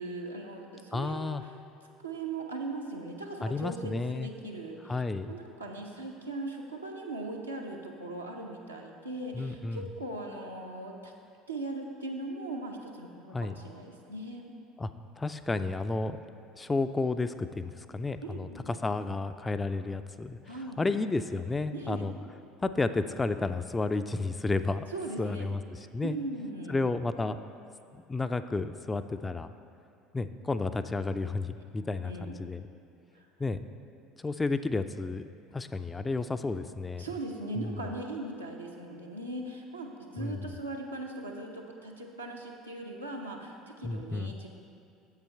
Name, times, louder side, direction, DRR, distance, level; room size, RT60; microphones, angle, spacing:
voice 1, 0.0-1.5 2.0-11.1 11.5-14.5 18.2-18.7 20.4-20.9 21.7-22.1 24.9-25.5 26.0-26.9 32.0-32.4 33.1-33.3 37.0-44.5, right 2 dB, 85° right, -1 dB, 0.8 m, -39 dB
voice 2, 0.9-1.4 3.4-4.3 4.9-5.3 9.3-9.8 13.3-13.6 14.8-14.9 15.2-16.2 16.6-22.1 22.6-24.9 25.2-26.2 26.7-27.4 28.1-29.5 30.1-32.7 33.4-33.6 34.2-35.3 35.5-37.1 37.6-37.8 40.2-40.4 43.8-44.3, left 3 dB, 15° left, 10 dB, 0.3 m, -32 dB
7.5 x 7.2 x 4.5 m, 2.4 s
figure-of-eight pair, 65°, 0 cm